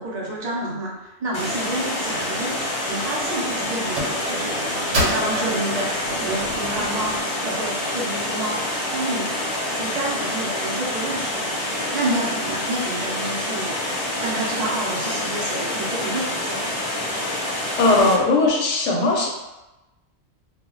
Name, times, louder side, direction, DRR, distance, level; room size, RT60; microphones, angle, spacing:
voice 1, 0.0-2.5 2.9-5.9 6.2-9.3 9.8-13.7 14.2-16.6, right 1 dB, 50° right, -4 dB, 0.5 m, -29 dB
Water, 1.3-18.1, left 1 dB, 40° left, 0.5 m, -27 dB
sound 1, 1.5-1.7 2.5-2.7 3.0-3.5 4.0-7.2, equal, 70° right, 1.1 m, -29 dB
voice 2, 17.8-19.3, left 2 dB, 70° left, 0 dB, 0.8 m, -18 dB
2.2 x 2.1 x 3.7 m, 1.0 s
omnidirectional pair, 1.3 m